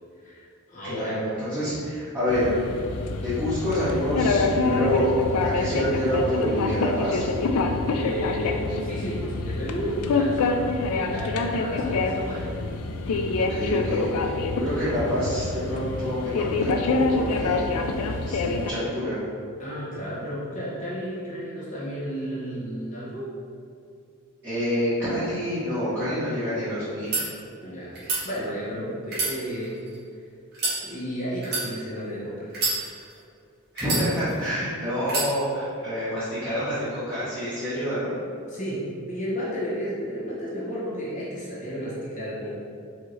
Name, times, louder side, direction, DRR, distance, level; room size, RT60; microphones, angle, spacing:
voice 1, 0.2-1.2 7.9-12.5 19.6-23.3 27.6-28.0 28.2-29.8 30.8-32.5 33.9-34.1 38.5-42.5, equal, 35° left, -7 dB, 0.8 m, -32 dB
voice 2, 0.8-2.5 3.2-5.1 5.4-7.3 13.3-17.7 17.9-19.2 24.4-27.2 33.7-38.1, equal, 10° right, -16 dB, 1.2 m, -27 dB
sound 1, 2.3-18.7, left 3 dB, 80° left, 0.4 m, -26 dB
sound 2, 26.9-27.2 27.9-28.2 29.0-30.0 30.5-30.8 31.4-31.7 32.5-33.2 33.8-34.5 35.0-35.3, right 3 dB, 45° right, 1.4 m, -27 dB
4.7 x 2.8 x 3.1 m, 2.4 s
head